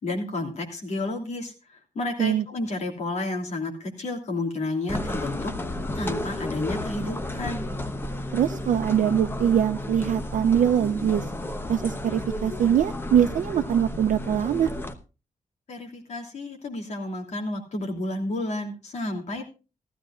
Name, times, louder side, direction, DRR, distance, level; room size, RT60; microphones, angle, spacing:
voice 1, 0.0-5.5 5.9-7.7 15.7-19.4, left 2 dB, 60° left, 2 dB, 2.9 m, -31 dB
sound 1, 4.9-14.9, left 1 dB, 15° left, 0.9 m, -32 dB
voice 2, 8.3-11.2 11.7-14.7, right 9 dB, 90° right, 5 dB, 0.6 m, -23 dB
16.0 x 14.5 x 2.5 m, 0.30 s
wide cardioid pair, 170°, 13 cm